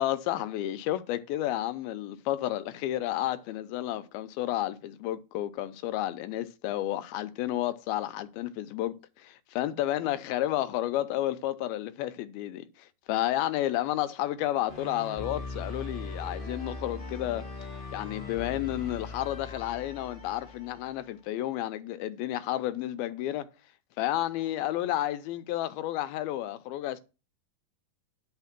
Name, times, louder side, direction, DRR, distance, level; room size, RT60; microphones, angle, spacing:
voice 1, 0.0-17.5 17.9-23.5 24.0-27.0, left 13 dB, 85° left, 2.6 m, -31 dB
sound 1, 14.7-21.1, left 3 dB, 35° left, 0.9 m, -40 dB
10.5 x 4.3 x 5.8 m
omnidirectional pair, 4.3 m